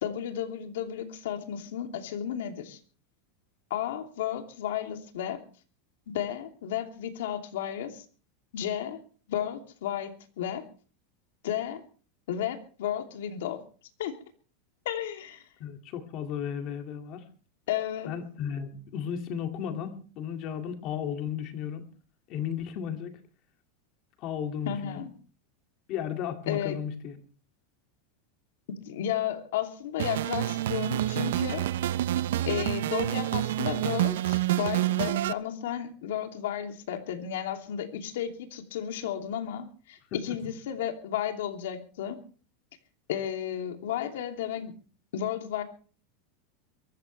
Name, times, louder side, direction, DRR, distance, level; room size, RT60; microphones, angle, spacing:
voice 1, 0.0-2.8 3.7-5.4 6.1-8.0 8.5-9.0 9.3-10.6 11.4-11.8 12.3-13.6 14.0-14.1 14.8-15.4 17.7-18.1 24.7-25.1 26.5-26.8 28.7-31.7 32.5-42.2 43.1-44.7 45.1-45.6, left 10 dB, 85° left, 5 dB, 2.8 m, -33 dB
voice 2, 15.6-17.2 18.1-21.8 22.3-23.2 24.2-25.0 25.9-27.1, left 8 dB, 40° left, 6 dB, 2.3 m, -34 dB
sound 1, 30.0-35.3, right 14 dB, 90° right, 0.7 m, -28 dB
23.0 x 14.5 x 3.3 m, 0.39 s
supercardioid pair, 160°, 0 cm